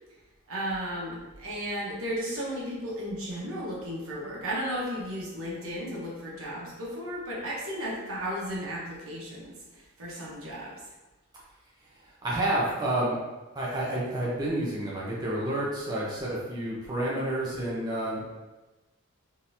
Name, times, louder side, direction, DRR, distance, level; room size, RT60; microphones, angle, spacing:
voice 1, 0.5-10.7, equal, 85° right, -5 dB, 1.0 m, -34 dB
voice 2, 12.2-13.2 13.5-18.3, right 1 dB, 20° right, -6 dB, 0.6 m, -29 dB
3.7 x 2.9 x 2.6 m, 1.1 s
head